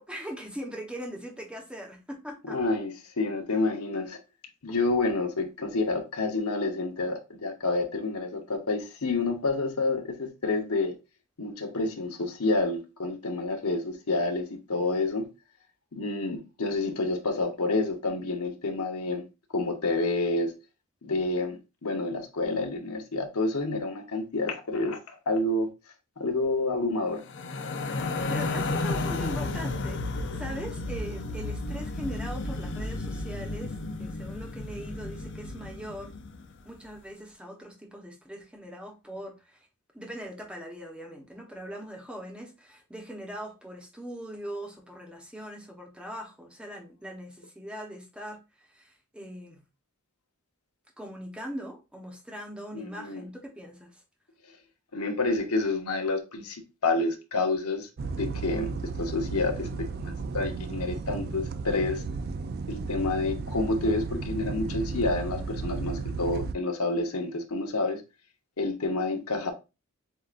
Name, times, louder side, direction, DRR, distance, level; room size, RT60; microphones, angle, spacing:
voice 1, 0.0-2.6 28.0-30.1 30.3-36.1 36.6-39.7 39.9-49.6 51.0-54.0, equal, 5° right, 1.0 m, -41 dB
voice 2, 2.4-4.2 4.6-10.9 11.4-15.3 15.9-19.2 19.5-20.5 21.0-25.7 26.2-27.2 52.7-53.2 54.9-57.9 58.2-59.7 60.0-62.0 62.7-68.0 68.6-69.5, left 3 dB, 80° left, 1.0 m, -29 dB
sound 1, 27.2-36.5, left 2 dB, 55° left, 0.5 m, -33 dB
sound 2, 58.0-66.5, right 4 dB, 45° right, 0.4 m, -34 dB
7.7 x 2.6 x 2.5 m
head